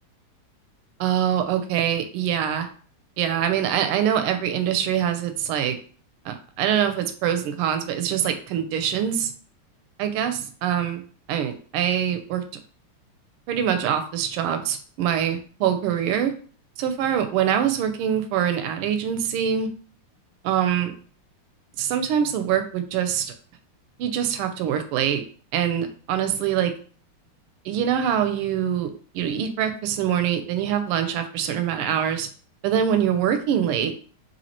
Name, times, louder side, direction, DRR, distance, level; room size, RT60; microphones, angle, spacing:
voice 1, 1.0-2.7 3.2-5.8 6.2-9.3 10.0-11.0 11.3-12.4 13.5-16.3 16.8-19.7 20.4-20.9 21.8-23.3 24.0-25.2 25.5-26.7 27.6-32.3 32.6-33.9, right 9 dB, 85° right, 7 dB, 1.4 m, -24 dB
4.1 x 3.1 x 2.8 m, 0.43 s
omnidirectional pair, 2.4 m